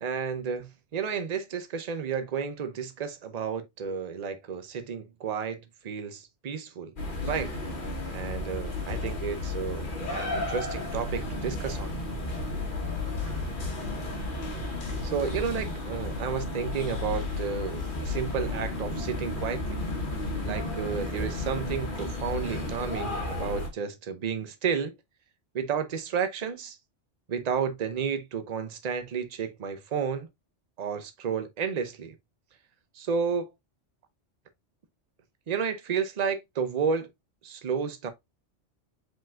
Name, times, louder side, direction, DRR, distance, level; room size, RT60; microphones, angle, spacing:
voice 1, 0.0-6.9 7.3-7.5 8.1-11.9 15.0-19.8 20.4-24.9 25.5-26.8 27.3-30.3 30.8-32.1 32.9-33.5 35.5-37.1 37.4-38.1, right 6 dB, 40° right, 0.7 m, -32 dB
sound 1, 7.0-23.7, left 2 dB, 45° left, 1.2 m, -33 dB
5.0 x 3.9 x 2.3 m
omnidirectional pair, 1.3 m